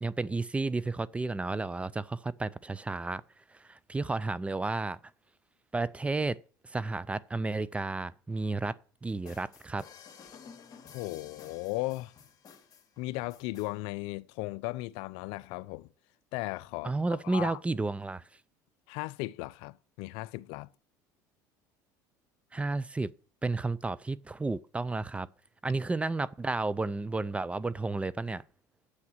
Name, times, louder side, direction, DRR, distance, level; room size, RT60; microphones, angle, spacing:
voice 1, 0.0-3.2 3.5-5.0 5.7-6.4 6.6-8.7 9.0-9.8 16.8-18.2 22.5-23.1 23.4-25.3 25.6-28.4, right 3 dB, 15° right, 0.4 m, -32 dB
sound 1, 9.1-13.7, left 7 dB, 40° left, 2.4 m, -53 dB
voice 2, 10.9-12.1 13.0-15.9 16.3-17.6 18.9-20.7, left 20 dB, 70° left, 0.5 m, -36 dB
8.0 x 5.9 x 7.7 m
supercardioid pair, 95°, 10 cm